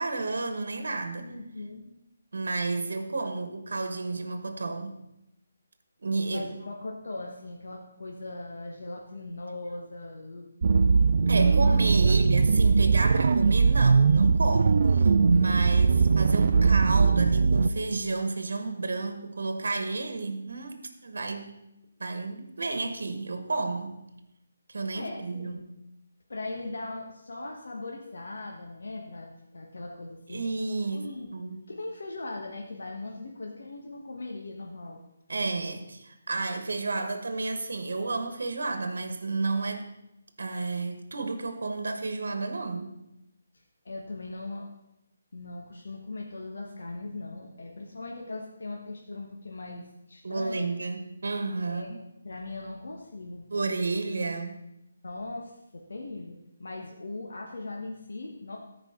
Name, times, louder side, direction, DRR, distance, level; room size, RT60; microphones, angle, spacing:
voice 1, 0.0-1.3 2.3-5.0 6.0-6.4 11.3-21.5 22.0-24.0 24.7-25.6 30.3-31.6 35.3-39.9 40.4-42.9 50.2-52.0 53.5-54.6, right 3 dB, 75° right, 7 dB, 1.1 m, -31 dB
voice 2, 1.2-1.9 6.3-10.5 12.0-12.1 24.9-25.6 26.3-30.4 30.9-31.3 31.7-35.0 43.8-44.7 45.3-50.7 51.7-51.9 52.2-53.5 55.0-58.6, left 2 dB, 75° left, 0 dB, 1.2 m, -39 dB
sound 1, 10.6-17.7, right 5 dB, 60° right, 0.3 m, -20 dB
14.0 x 4.9 x 3.7 m, 0.89 s
hypercardioid pair, 160°, 0 cm